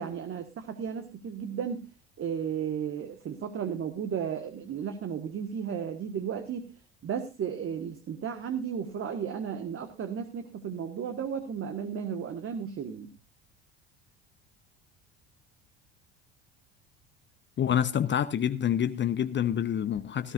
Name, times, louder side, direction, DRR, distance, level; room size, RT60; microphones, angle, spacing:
voice 1, 0.0-1.8 2.2-6.7 7.0-13.1, right 7 dB, 45° right, 1.5 m, -34 dB
voice 2, 17.6-20.3, left 9 dB, 35° left, 0.8 m, -27 dB
17.5 x 13.5 x 2.5 m
hypercardioid pair, 65°, 32 cm